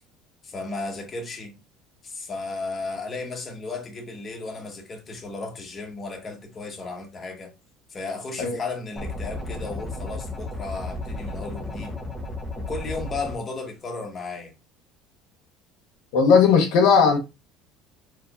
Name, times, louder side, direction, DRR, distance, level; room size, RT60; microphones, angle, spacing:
voice 1, 0.4-1.5 2.0-7.5 7.9-12.0 12.5-14.5, left 3 dB, 30° left, 1.3 m, -34 dB
sound 1, 9.0-13.3, left 2 dB, 10° left, 1.0 m, -33 dB
voice 2, 16.1-17.2, left 6 dB, 75° left, 1.0 m, -17 dB
4.4 x 3.2 x 2.5 m
supercardioid pair, 115°, 0 cm